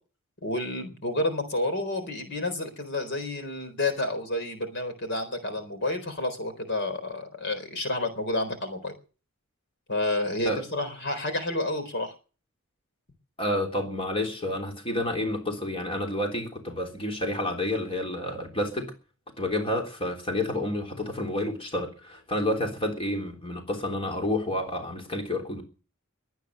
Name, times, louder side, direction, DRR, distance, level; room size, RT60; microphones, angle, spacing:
voice 1, 0.4-8.9 9.9-12.1, left 2 dB, 55° left, 4.0 m, -30 dB
voice 2, 13.4-18.9 19.4-25.6, left 1 dB, 25° left, 3.4 m, -29 dB
22.5 x 9.4 x 6.5 m
head